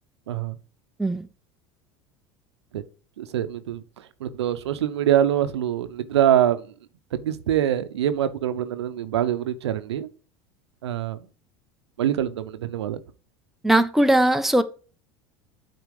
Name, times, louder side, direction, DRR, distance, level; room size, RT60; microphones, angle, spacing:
voice 1, 3.2-6.7 7.1-10.1 10.8-11.2 12.0-13.0, right 11 dB, 90° right, 0.7 m, -24 dB
voice 2, 13.6-14.6, right 1 dB, ahead, 0.7 m, -19 dB
8.2 x 4.4 x 4.8 m
hypercardioid pair, 85°, 14 cm